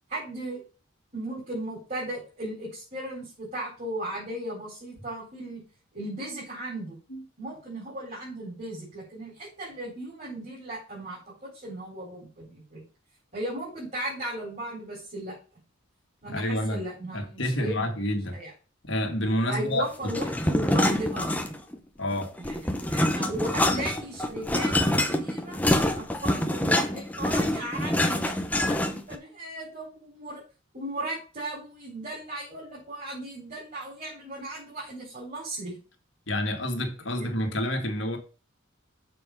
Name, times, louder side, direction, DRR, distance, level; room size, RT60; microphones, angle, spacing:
voice 1, 0.1-0.6 1.1-5.6 5.9-7.0 7.4-12.8 13.3-15.4 16.2-17.8 18.3-18.5 19.5-21.3 22.4-25.6 26.0-30.4 30.7-35.8 37.1-37.3, right 1 dB, 35° right, 4.2 m, -36 dB
voice 2, 16.3-16.9 17.1-18.4 18.8-19.9 22.0-22.3 36.3-38.2, left 1 dB, 60° left, 2.2 m, -28 dB
sound 1, 20.1-21.8 22.1-29.1, left 1 dB, 5° left, 0.8 m, -26 dB
7.0 x 6.0 x 5.3 m
head